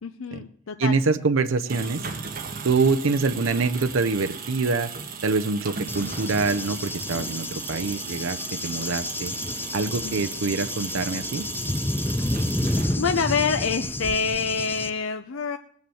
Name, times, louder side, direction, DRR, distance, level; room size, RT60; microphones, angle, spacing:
voice 1, 0.0-1.0 9.8-10.2 12.0-12.4 12.7-15.6, left 5 dB, 75° left, 7 dB, 0.7 m, -27 dB
voice 2, 0.8-2.0 2.6-4.9 5.2-9.3 9.7-11.5, right 4 dB, 75° right, 8 dB, 0.6 m, -25 dB
sound 1, 1.5-13.3, right 6 dB, 45° right, 1.7 m, -37 dB
Cricket / Thunder, 5.9-14.9, left 1 dB, 10° left, 0.5 m, -30 dB
20.0 x 7.3 x 7.7 m, 0.64 s
head